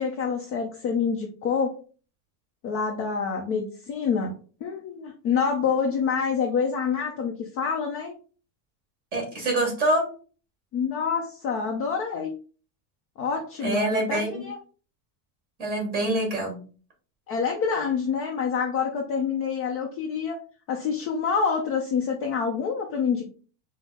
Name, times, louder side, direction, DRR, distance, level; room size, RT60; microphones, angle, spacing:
voice 1, 0.0-1.8 2.6-4.3 4.6-8.1 10.7-12.3 13.2-14.6 17.3-20.4 20.7-23.3, left 6 dB, 35° left, 1 dB, 0.5 m, -27 dB
voice 2, 9.1-10.1 13.6-14.5 15.6-16.6, right 1 dB, 20° right, 1 dB, 1.6 m, -25 dB
5.1 x 2.1 x 3.5 m, 0.39 s
supercardioid pair, 165°, 45 cm